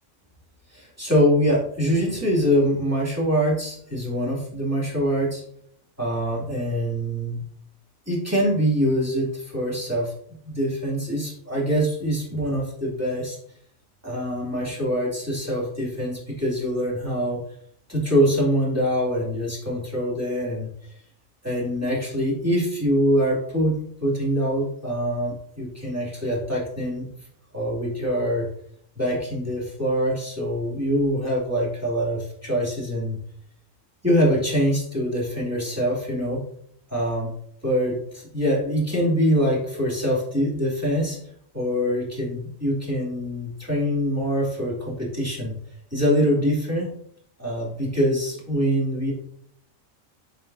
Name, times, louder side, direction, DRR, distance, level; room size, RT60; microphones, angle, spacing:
voice 1, 0.7-5.4 6.0-7.4 8.1-10.1 10.4-13.4 14.0-17.4 17.9-20.7 21.4-27.1 27.5-28.5 29.0-33.2 34.0-36.4 36.9-37.3 37.6-41.2 41.5-45.5 45.9-46.9 47.4-49.1, equal, 10° right, -5 dB, 2.7 m, -24 dB
7.5 x 6.0 x 2.7 m, 0.64 s
omnidirectional pair, 1.4 m